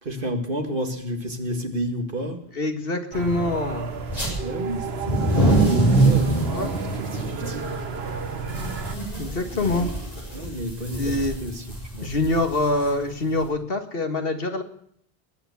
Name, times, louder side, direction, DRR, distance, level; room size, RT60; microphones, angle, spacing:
voice 1, 0.0-2.4 4.4-5.4 6.0-6.5 6.8-7.8 10.3-11.7 11.9-12.1, equal, 55° right, 5 dB, 2.2 m, -31 dB
voice 2, 2.6-3.9 6.5-6.7 9.2-9.9 11.0-11.4 12.0-14.6, left 2 dB, 65° left, 6 dB, 2.0 m, -25 dB
sound 1, 3.1-9.0, right 5 dB, 75° right, 1.4 m, -32 dB
sound 2, 4.0-4.3 4.9-13.4, right 2 dB, 40° left, 6.6 m, -24 dB
21.0 x 9.2 x 7.1 m, 0.68 s
omnidirectional pair, 1.0 m